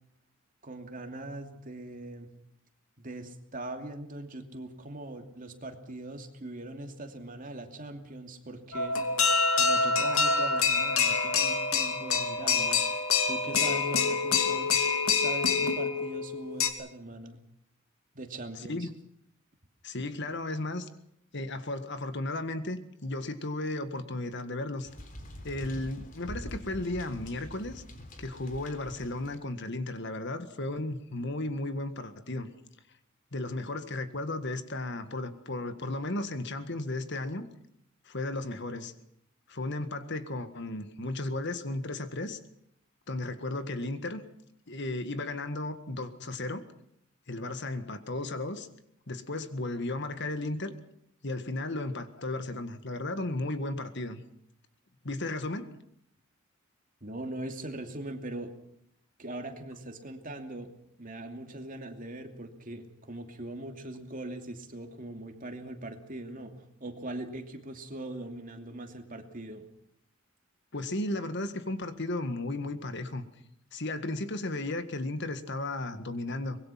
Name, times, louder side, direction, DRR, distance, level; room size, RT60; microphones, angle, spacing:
voice 1, 0.6-2.3 3.0-9.0 9.5-12.9 13.3-14.7 15.2-17.4 18.1-18.9 57.0-58.5 59.2-69.7, right 1 dB, 40° right, 5 dB, 2.7 m, -41 dB
sound 1, 8.7-16.7, left 5 dB, 90° left, 2.6 m, -26 dB
voice 2, 18.5-18.9 19.8-20.9 21.3-24.9 25.4-27.8 28.2-32.5 33.3-37.5 38.1-38.9 39.5-42.4 43.1-44.2 44.7-46.6 47.3-48.7 49.1-50.7 51.2-54.2 55.0-55.7 70.7-73.2 73.7-76.6, left 2 dB, 55° left, 10 dB, 1.8 m, -34 dB
sound 2, 24.9-29.3, equal, 40° left, 3.7 m, -44 dB
24.5 x 21.5 x 5.9 m, 0.72 s
head